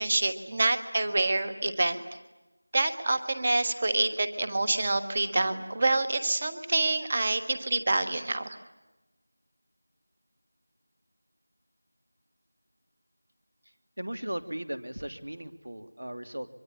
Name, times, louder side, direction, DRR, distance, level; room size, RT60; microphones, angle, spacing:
voice 1, 0.0-2.0 2.7-8.6, right 2 dB, 20° right, 9 dB, 1.5 m, -27 dB
voice 2, 14.0-16.5, right 1 dB, 75° right, 9 dB, 2.9 m, -37 dB
24.5 x 23.5 x 10.0 m, 1.1 s
figure-of-eight pair, 180°, 0 cm